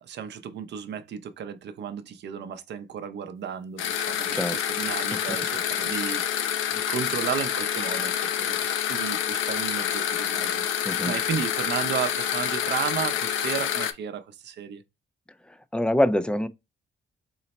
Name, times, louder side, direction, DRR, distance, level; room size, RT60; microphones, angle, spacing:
voice 1, 0.0-14.8, right 8 dB, 60° right, 0.6 m, -34 dB
sound 1, 3.8-13.9, left 9 dB, 80° left, 0.5 m, -27 dB
voice 2, 15.7-16.5, left 1 dB, 5° left, 0.3 m, -24 dB
3.9 x 2.1 x 4.0 m
cardioid pair, 90°, 20 cm